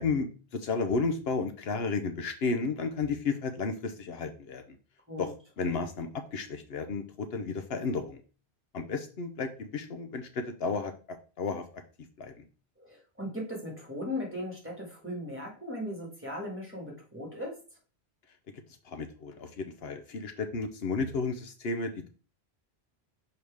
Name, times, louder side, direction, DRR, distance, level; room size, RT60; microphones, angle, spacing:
voice 1, 0.0-4.6 5.2-8.2 8.7-11.6 12.2-12.4 18.8-22.1, left 4 dB, 75° left, 7 dB, 1.0 m, -33 dB
voice 2, 12.8-17.6, left 1 dB, 10° right, -1 dB, 2.0 m, -38 dB
6.3 x 4.7 x 3.5 m, 0.36 s
omnidirectional pair, 1.1 m